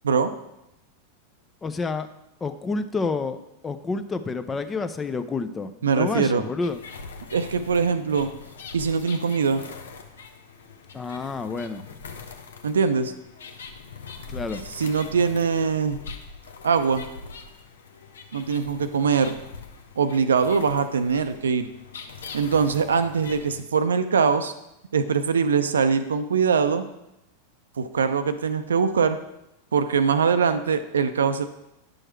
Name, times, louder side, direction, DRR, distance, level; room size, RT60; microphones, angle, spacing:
voice 1, 1.6-2.1 2.4-3.4 3.6-6.8 10.9-11.8 14.3-14.6, left 4 dB, 15° left, 11 dB, 0.6 m, -29 dB
voice 2, 5.8-6.4 7.3-8.3 8.7-9.6 12.6-13.1 14.7-16.0 16.6-17.0 18.3-19.3 20.0-21.7 22.3-24.5 24.9-26.9 27.8-29.2 29.7-31.5, right 5 dB, 70° right, 10 dB, 0.6 m, -22 dB
sound 1, 6.6-23.6, left 5 dB, 65° left, 0.8 m, -42 dB
9.8 x 6.4 x 4.5 m, 0.88 s
figure-of-eight pair, 90°, 0 cm